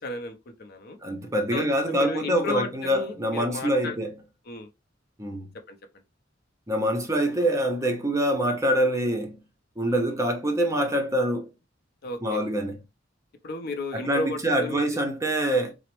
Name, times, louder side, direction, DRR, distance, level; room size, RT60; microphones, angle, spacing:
voice 1, 0.0-1.0 1.5-4.0 4.5-4.7 5.7-5.8 9.9-10.0 12.0-12.5 13.4-14.9, left 2 dB, 55° left, 0.5 m, -34 dB
voice 2, 1.0-4.1 5.2-5.5 6.7-9.4 9.8-11.5 12.2-12.8 13.9-15.7, right 1 dB, 15° right, 0.6 m, -25 dB
4.0 x 2.0 x 3.0 m
head